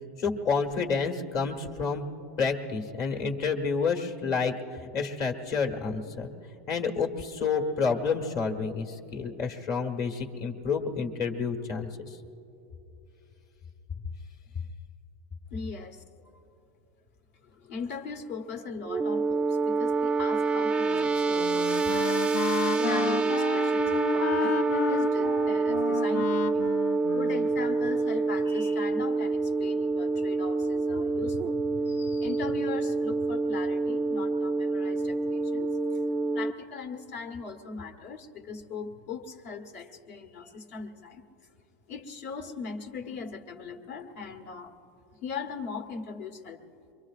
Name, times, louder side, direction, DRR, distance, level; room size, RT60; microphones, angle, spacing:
voice 1, 0.2-2.0 2.4-6.3 6.7-12.2, left 5 dB, 45° left, 3 dB, 1.4 m, -29 dB
voice 2, 15.5-16.0 16.3-16.4 17.4-22.2 22.7-26.7 27.1-36.0 36.3-41.2 41.9-44.7 45.2-46.6, left 5 dB, 65° left, 4 dB, 1.4 m, -39 dB
sound 1, 18.8-36.5, right 3 dB, 10° right, 0.3 m, -27 dB
Wind instrument woodwind instrument, 20.9-28.0, left 11 dB, 85° left, 0.4 m, -34 dB
24.5 x 23.5 x 2.5 m, 3.0 s
supercardioid pair, 130°, 8 cm